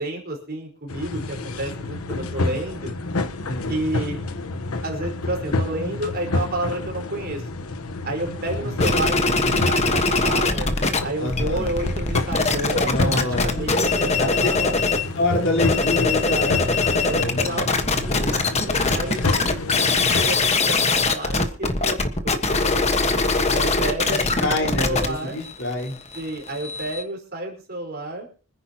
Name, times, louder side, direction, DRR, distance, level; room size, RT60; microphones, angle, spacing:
voice 1, 0.0-2.9 3.7-4.2 4.8-7.4 8.0-9.2 9.5-10.7 11.0-14.7 16.0-16.6 17.0-23.1 23.5-25.4 26.1-28.3, right 1 dB, 45° right, 1 dB, 4.8 m, -30 dB
sound 1, 0.9-20.3, left 2 dB, 85° left, 1.1 m, -29 dB
sound 2, 8.8-11.0 11.2-15.1 15.5-27.0, left 3 dB, 30° left, 1.4 m, -22 dB
voice 2, 11.2-11.7 12.8-13.8 14.2-14.3 14.6-14.7 15.1-16.5 16.9-17.6 24.1-25.9, left 2 dB, 60° left, 0 dB, 4.6 m, -26 dB
25.5 x 10.0 x 3.0 m, 0.37 s
head